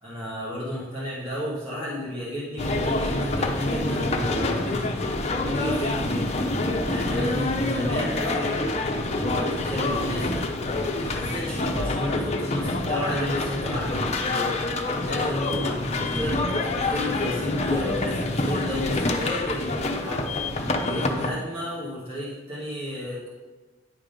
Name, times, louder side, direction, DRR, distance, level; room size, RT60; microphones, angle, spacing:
voice 1, 0.0-5.0 5.4-14.6 15.0-23.3, left 1 dB, 30° right, -7 dB, 1.5 m, -32 dB
sound 1, 2.6-21.3, left 2 dB, 35° left, 0.6 m, -27 dB
9.9 x 3.7 x 5.1 m, 1.3 s
head